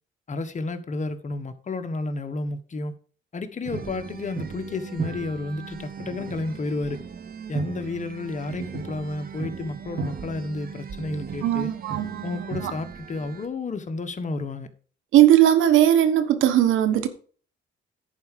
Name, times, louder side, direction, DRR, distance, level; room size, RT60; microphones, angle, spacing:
voice 1, 0.3-2.9 3.3-7.0 7.5-11.7 12.2-14.7, left 3 dB, 35° left, 1.3 m, -31 dB
sound 1, 3.6-13.5, right 6 dB, 50° right, 1.2 m, -37 dB
voice 2, 11.4-12.7 15.1-17.1, right 12 dB, 85° right, 1.3 m, -19 dB
11.0 x 4.7 x 6.7 m
cardioid pair, 90°, 20 cm